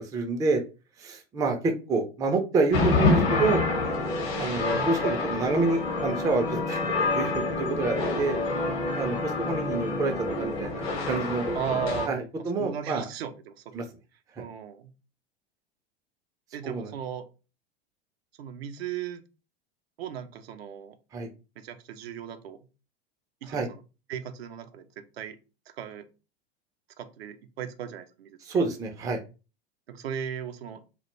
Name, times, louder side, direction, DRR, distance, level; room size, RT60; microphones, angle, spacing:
voice 1, 0.1-0.6 1.0-3.6 4.4-8.4 8.9-10.1 10.4-11.5 12.1-13.1 13.7-13.8 16.6-16.9 21.1-21.3 23.5-23.7 28.4-29.2, right 3 dB, 10° right, 4 dB, 0.3 m, -28 dB
sound 1, 2.7-12.1, left 3 dB, 65° left, 0.8 m, -27 dB
voice 2, 4.7-5.1 11.5-12.1 12.6-13.8 14.4-14.9 16.5-17.3 18.4-19.2 20.0-21.0 21.6-22.6 23.4-23.8 24.1-25.4 25.8-26.1 27.0-28.4 29.9-30.8, right 8 dB, 75° right, 8 dB, 0.5 m, -36 dB
2.2 x 2.0 x 2.9 m, 0.31 s
hypercardioid pair, 85°, 31 cm